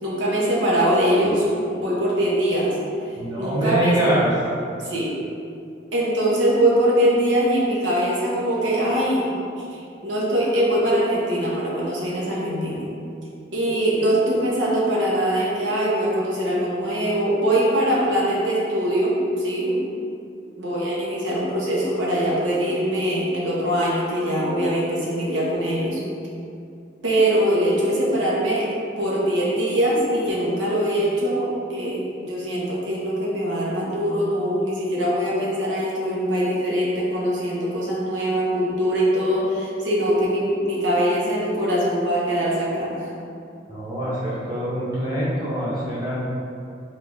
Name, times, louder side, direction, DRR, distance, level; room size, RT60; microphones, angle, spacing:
voice 1, 0.0-1.4 1.7-2.8 3.1-4.1 4.8-5.1 5.9-12.9 13.5-19.9 20.5-26.0 27.0-28.7 29.0-43.1, right 1 dB, 80° right, -5 dB, 1.0 m, -22 dB
voice 2, 3.2-4.3 43.7-46.2, right 1 dB, 20° right, -9 dB, 1.0 m, -24 dB
3.8 x 3.2 x 3.7 m, 2.5 s
head